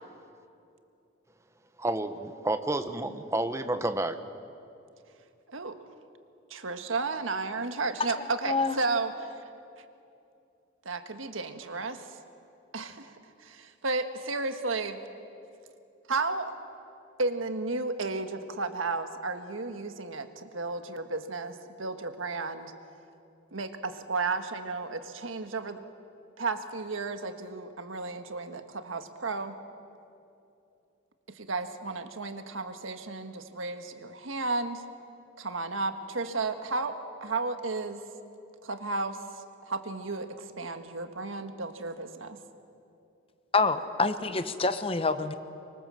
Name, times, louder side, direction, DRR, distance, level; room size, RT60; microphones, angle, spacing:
voice 1, 1.8-4.2, right 1 dB, 15° right, 9 dB, 1.0 m, -30 dB
voice 2, 5.5-5.8 6.5-9.3 10.8-12.1 12.7-15.0 16.1-16.5 17.2-22.7 23.5-25.8 26.4-29.6 31.3-34.8 35.4-38.1 38.6-42.4, right 3 dB, 90° right, 8 dB, 1.6 m, -33 dB
voice 3, 8.2-8.8 43.5-45.3, left 3 dB, 30° left, 10 dB, 1.0 m, -27 dB
25.5 x 23.5 x 7.6 m, 2.7 s
head